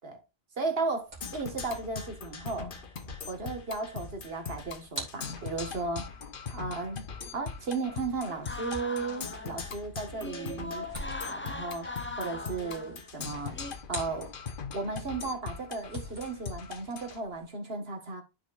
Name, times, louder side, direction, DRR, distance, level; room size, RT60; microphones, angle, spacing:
voice 1, 0.6-2.7 3.3-6.1 6.5-10.9 11.3-11.9 12.2-13.6 13.9-14.3 14.7-18.2, right 3 dB, 70° right, 1.9 m, -35 dB
sound 1, 1.0-14.7 15.0-17.5, right 1 dB, 45° right, 2.7 m, -48 dB
Percussion, 1.2-17.2, left 6 dB, 60° left, 1.1 m, -41 dB
sound 2, 8.2-9.7 10.1-13.1 13.5-13.7, left 2 dB, 15° left, 0.5 m, -40 dB
12.5 x 5.2 x 2.5 m
omnidirectional pair, 1.0 m